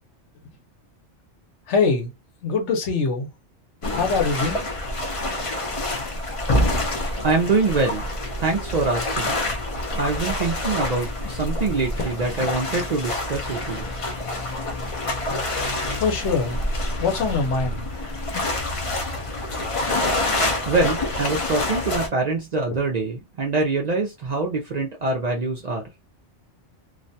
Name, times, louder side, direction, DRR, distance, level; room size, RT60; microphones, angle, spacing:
voice 1, 1.7-2.1 2.4-3.3 3.9-4.6 16.0-16.6 17.0-17.9, left 4 dB, 85° left, 1.1 m, -23 dB
sound 1, 3.8-22.1, left 1 dB, 45° left, 0.4 m, -27 dB
voice 2, 7.2-8.1 8.4-9.4 9.9-13.9 20.7-25.9, right 3 dB, 55° right, 0.4 m, -24 dB
2.4 x 2.1 x 2.6 m
omnidirectional pair, 1.1 m